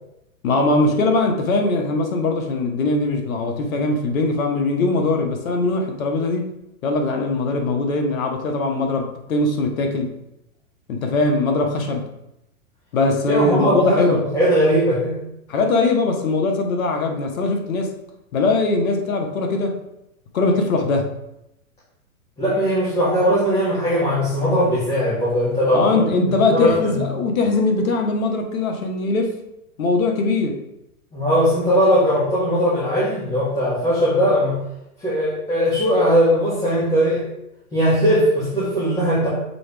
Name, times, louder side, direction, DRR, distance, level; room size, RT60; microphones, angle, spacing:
voice 1, 0.4-6.5 6.8-10.1 10.9-12.0 12.9-14.2 15.5-18.0 18.3-19.8 20.3-21.1 25.7-29.3 29.8-30.6, left 3 dB, 70° left, 3 dB, 1.5 m, -21 dB
voice 2, 13.3-15.1 22.4-26.1 26.5-27.0 31.1-34.6 35.0-37.2 37.7-39.3, equal, 15° left, -10 dB, 2.3 m, -19 dB
6.9 x 4.6 x 3.5 m, 0.85 s
hypercardioid pair, 135°, 43 cm